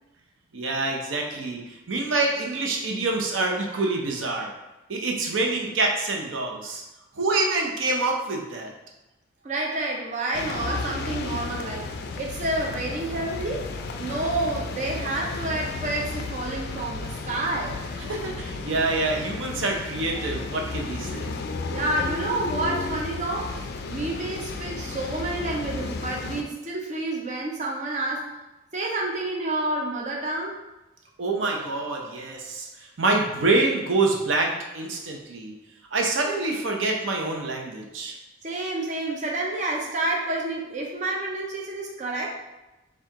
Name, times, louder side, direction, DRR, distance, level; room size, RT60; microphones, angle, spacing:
voice 1, 0.5-4.5 4.9-6.8 7.1-8.7 18.0-21.3 31.2-35.5 35.9-38.2, right 3 dB, 80° right, 1 dB, 0.7 m, -26 dB
voice 2, 9.4-13.6 14.0-17.8 21.7-28.3 28.7-30.6 38.4-42.3, right 2 dB, 40° right, -2 dB, 0.5 m, -29 dB
sound 1, 10.3-26.4, left 3 dB, 55° left, 0.3 m, -33 dB
4.5 x 2.4 x 3.5 m, 1.0 s
head